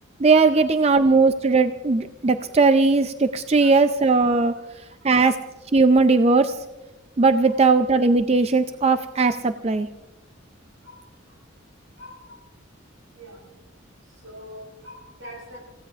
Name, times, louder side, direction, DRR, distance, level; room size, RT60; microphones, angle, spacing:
voice 1, 0.2-4.5 5.0-5.4 5.7-6.6 7.2-9.9, right 3 dB, 30° right, 9 dB, 0.5 m, -18 dB
voice 2, 12.0-12.4 13.2-13.4 14.2-15.6, equal, 85° right, 0 dB, 6.1 m, -43 dB
28.5 x 16.5 x 2.5 m, 1.1 s
head